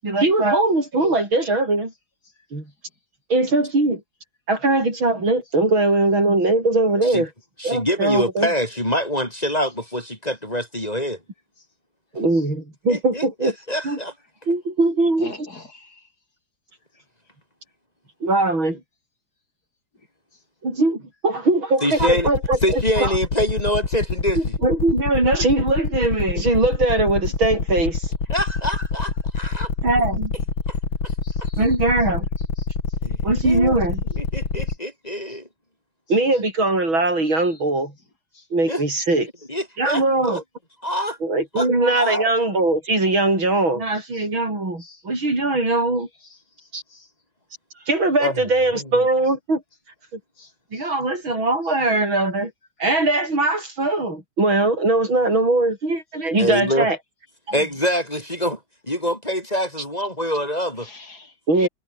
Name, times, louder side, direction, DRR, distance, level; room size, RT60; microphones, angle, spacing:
voice 1, 0.0-1.9 2.5-2.6 3.3-4.0 4.5-7.3 7.6-8.5 12.2-13.5 13.8-14.0 14.5-15.5 18.2-18.8 20.6-23.2 24.4-28.1 29.8-30.3 31.6-32.3 33.2-34.0 36.1-37.9 38.5-39.3 39.8-40.4 41.2-46.1 46.7-46.8 47.9-49.6 50.7-52.5 52.8-57.0 57.5-57.6 61.5-61.7, right 2 dB, 80° right, 9.1 m, -21 dB
voice 2, 7.6-11.2 12.9-14.1 21.8-22.3 22.6-24.5 28.3-29.7 30.7-30.8 33.0-33.2 33.4-33.8 34.1-35.5 38.7-38.8 39.5-40.4 40.8-41.2 41.5-41.7 42.0-42.3 48.2-48.4 48.7-48.8 56.4-56.9 57.5-58.6 58.9-60.9 61.6-61.7, equal, 20° left, 5.6 m, -25 dB
voice 3, 15.2-15.9 31.2-31.6 35.3-35.4 38.4-38.5 44.8-45.0 46.9-47.1 50.4-50.5 50.7-50.9 60.8-61.3 61.6-61.7, left 2 dB, 50° left, 7.7 m, -42 dB
sound 1, 22.0-34.8, left 4 dB, 80° left, 4.3 m, -26 dB
omnidirectional pair, 2.1 m